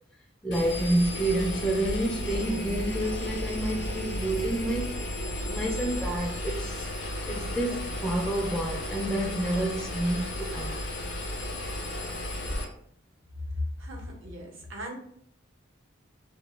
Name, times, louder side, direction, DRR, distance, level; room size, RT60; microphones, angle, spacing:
voice 1, 0.4-5.0 5.5-6.9 7.3-10.8, right 1 dB, 5° left, 0.3 m, -29 dB
Engine, 0.5-12.6, left 1 dB, 60° left, 0.6 m, -33 dB
voice 2, 13.8-15.0, right 1 dB, 75° right, 0.7 m, -40 dB
2.7 x 2.0 x 3.1 m
head